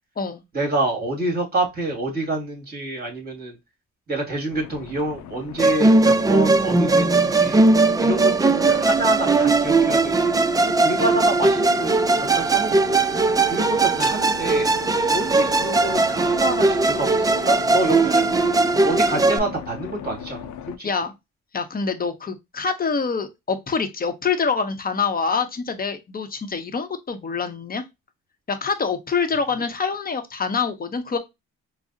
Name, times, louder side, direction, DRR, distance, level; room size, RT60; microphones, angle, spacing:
voice 1, 0.5-3.6 4.1-7.6 8.0-13.0 13.5-14.7 15.1-18.3 18.8-20.5 20.8-20.9, right 2 dB, 30° right, 2.0 m, -27 dB
sound 1, 4.5-20.8, left 9 dB, 75° left, 0.5 m, -38 dB
Musical instrument, 5.6-19.4, right 3 dB, 15° right, 0.3 m, -19 dB
voice 2, 21.5-27.8 28.5-31.2, left 5 dB, 30° left, 0.7 m, -25 dB
4.7 x 2.0 x 2.5 m
cardioid pair, 90°, 30 cm